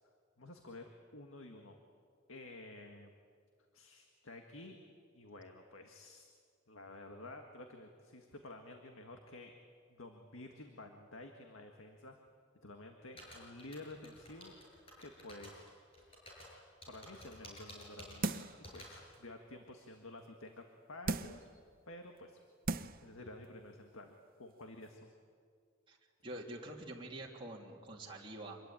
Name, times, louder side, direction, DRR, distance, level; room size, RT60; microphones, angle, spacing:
voice 1, 0.4-1.8 2.3-3.1 3.7-4.8 5.1-6.3 6.7-9.5 9.9-12.2 12.6-14.6 15.0-15.7 16.0-16.1 16.9-21.5 21.9-22.4 23.0-25.1, left 2 dB, 85° left, 4 dB, 1.8 m, -51 dB
sound 1, 13.2-19.0, left 1 dB, 30° left, 7.4 m, -52 dB
sound 2, 18.2-18.7 19.1-19.2 21.0-21.5 22.2-22.3 22.6-23.1 23.4-23.5, right 3 dB, 45° right, 0.7 m, -37 dB
voice 2, 26.2-28.6, right 1 dB, 25° right, -2 dB, 3.1 m, -46 dB
26.0 x 22.0 x 9.0 m, 2.1 s
head